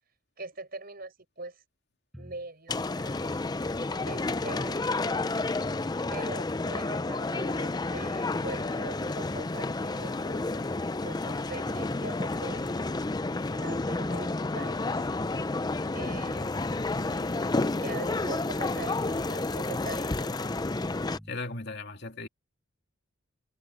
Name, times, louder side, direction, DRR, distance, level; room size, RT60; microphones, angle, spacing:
voice 1, 0.4-1.6 2.2-3.4 4.0-4.8 6.1-10.7 11.0-12.8 13.5-15.1 15.9-16.6 17.7-20.4, right 2 dB, 45° right, 5.8 m, -43 dB
sound 1, 2.1-2.5 2.7-2.8 3.0-4.7 5.1-7.2 7.5-9.5 9.8-10.0 10.4-12.0 12.4-13.0 13.3-14.3 14.7-16.8 17.1-17.2 17.4-17.8 18.0-21.3, equal, ahead, 5.0 m, -47 dB
sound 2, 2.7-21.2, left 2 dB, 20° left, 0.4 m, -30 dB
voice 2, 21.3-22.3, left 3 dB, 50° left, 2.8 m, -39 dB
head